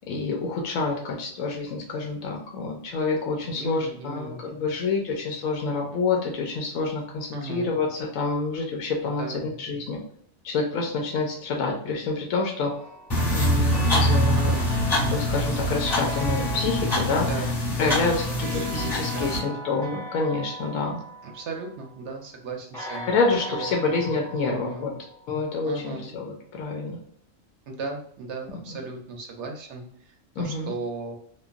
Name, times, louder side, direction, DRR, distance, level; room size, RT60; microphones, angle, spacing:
voice 1, 0.1-10.0 10.4-12.7 13.3-14.6 15.1-17.5 17.8-21.0 23.1-24.9 25.3-27.0 30.4-30.7, left 3 dB, 90° left, 1 dB, 1.0 m, -27 dB
voice 2, 3.5-4.4 7.3-7.7 9.0-9.4 14.3-14.8 17.1-17.6 18.2-19.6 21.2-23.7 24.4-24.9 25.6-26.1 27.7-31.2, right 3 dB, 65° right, 2 dB, 0.8 m, -37 dB
sound 1, 12.7-22.0 22.7-25.6, equal, 45° left, 1.5 m, -39 dB
sound 2, 13.1-19.4, equal, 30° left, 1.7 m, -24 dB
3.1 x 2.2 x 2.4 m, 0.65 s
omnidirectional pair, 1.4 m